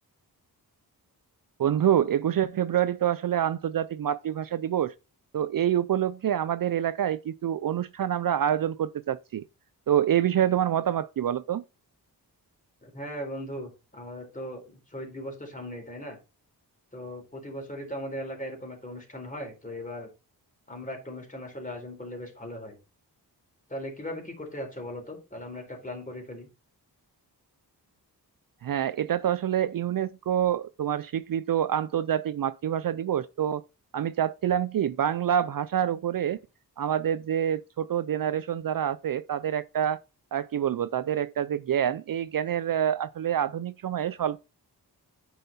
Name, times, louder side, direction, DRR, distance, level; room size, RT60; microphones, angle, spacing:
voice 1, 1.6-4.9 5.3-9.4 9.9-11.6 28.6-33.6 33.9-36.4 36.8-40.0 40.3-44.4, right 10 dB, 55° right, 0.5 m, -27 dB
voice 2, 12.8-16.2 16.9-20.1 20.7-22.8 23.7-26.5, equal, 20° left, 4.0 m, -38 dB
9.3 x 5.6 x 4.2 m
wide cardioid pair, 100°, 40 cm